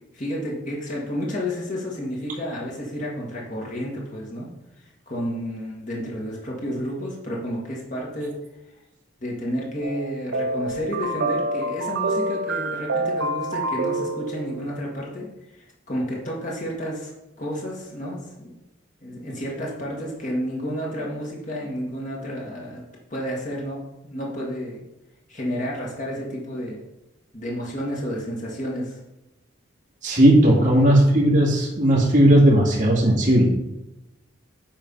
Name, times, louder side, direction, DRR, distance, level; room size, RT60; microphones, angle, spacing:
voice 1, 0.1-4.5 5.1-8.4 9.2-15.3 15.5-17.1 17.4-18.5 19.0-22.8 23.1-24.9 25.3-26.8 27.3-29.0 30.5-30.9, equal, 40° left, -3 dB, 2.0 m, -31 dB
sound 1, 9.8-14.8, right 2 dB, 65° right, 0.7 m, -27 dB
voice 2, 30.0-33.4, right 1 dB, 40° right, -4 dB, 2.4 m, -16 dB
9.1 x 4.1 x 5.6 m, 0.93 s
head